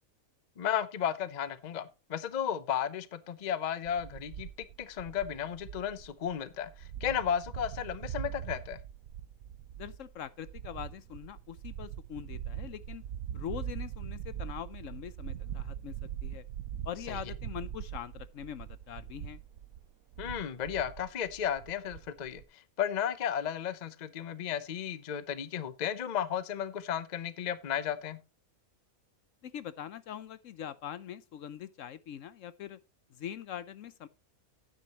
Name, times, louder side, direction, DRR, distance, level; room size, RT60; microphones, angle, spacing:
voice 1, 0.6-4.5 4.8-8.8 17.1-17.2 20.2-28.2, left 9 dB, 40° left, 0.7 m, -34 dB
sound 1, 3.9-22.4, right 10 dB, 85° right, 1.2 m, -42 dB
voice 2, 9.8-13.0 13.3-16.4 16.8-19.4 29.4-32.8 33.1-34.1, left 9 dB, 70° left, 1.0 m, -43 dB
11.0 x 9.4 x 2.9 m
omnidirectional pair, 1.5 m